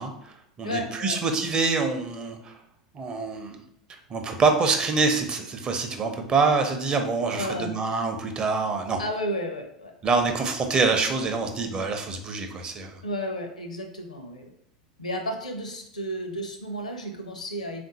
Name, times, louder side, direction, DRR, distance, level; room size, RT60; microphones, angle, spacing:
voice 1, 0.0-2.5 2.9-3.6 4.1-9.0 10.0-13.0, right 4 dB, 25° right, 4 dB, 0.6 m, -25 dB
voice 2, 0.6-1.2 7.3-7.7 9.0-9.9 13.0-14.5 15.0-17.9, equal, 80° left, 5 dB, 0.6 m, -32 dB
3.6 x 2.5 x 4.0 m, 0.72 s
figure-of-eight pair, 85°, 4 cm